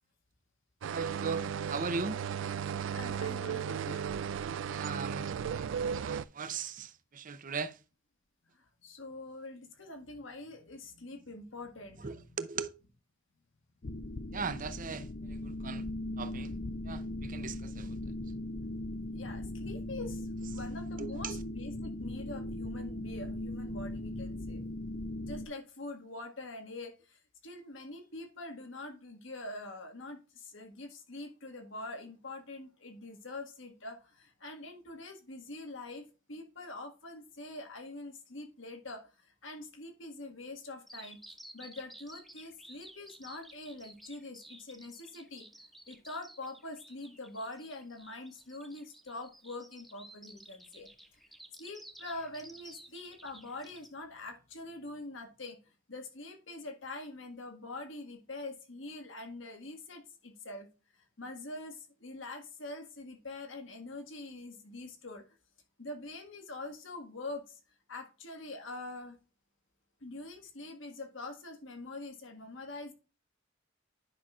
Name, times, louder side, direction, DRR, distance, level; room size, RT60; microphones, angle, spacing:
sound 1, 0.8-6.2, right 7 dB, 70° right, 0.3 m, -35 dB
voice 1, 0.9-2.2 4.7-7.8 12.0-12.7 14.3-15.8 16.2-16.5 16.9-17.9 21.0-21.4, right 4 dB, 45° right, 0.7 m, -39 dB
voice 2, 2.9-4.0 8.6-12.2 19.1-24.6 25.2-39.1 39.4-41.2 41.5-45.5 45.9-50.9 51.6-55.6 55.9-60.7 61.2-65.2 65.8-67.6 67.9-69.1 70.0-72.9, left 2 dB, 75° left, 1.7 m, -44 dB
sound 2, 13.8-25.5, left 1 dB, 45° left, 0.5 m, -39 dB
Bird vocalization bird call bird song, 40.9-53.9, right 1 dB, ahead, 1.1 m, -53 dB
10.0 x 5.8 x 2.4 m
head